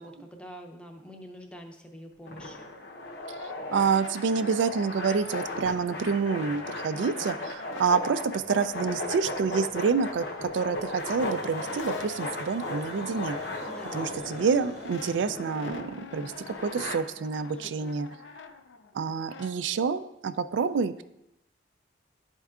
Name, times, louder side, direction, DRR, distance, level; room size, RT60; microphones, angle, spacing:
voice 1, 0.0-2.7 6.9-7.2 13.6-14.1 17.5-17.9, equal, 5° left, 3 dB, 0.6 m, -46 dB
sound 1, 2.3-17.0, left 2 dB, 65° left, 0.8 m, -37 dB
Brass instrument, 2.7-7.1 7.4-19.6, left 4 dB, 90° left, 0.4 m, -45 dB
voice 2, 3.4-13.7 13.9-18.1 18.9-21.0, right 5 dB, 80° right, 13 dB, 0.3 m, -28 dB
sound 2, 4.5-7.2 7.4-7.5 7.7-7.8 8.2-10.8 11.1-15.3, right 1 dB, 35° right, 0.7 m, -57 dB
11.0 x 4.4 x 2.4 m, 0.87 s
head